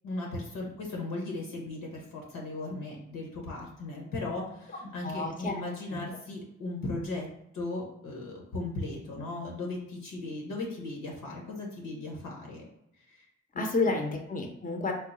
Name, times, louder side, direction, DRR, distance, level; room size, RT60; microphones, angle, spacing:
voice 1, 0.0-7.3 7.5-12.7 13.1-13.2 13.5-14.0, left 2 dB, 80° left, -1 dB, 1.1 m, -37 dB
voice 2, 5.0-5.6 5.9-6.0 13.6-14.9, left 3 dB, 25° left, 3 dB, 0.7 m, -30 dB
3.7 x 2.0 x 4.1 m, 0.81 s
supercardioid pair, 40°, 32 cm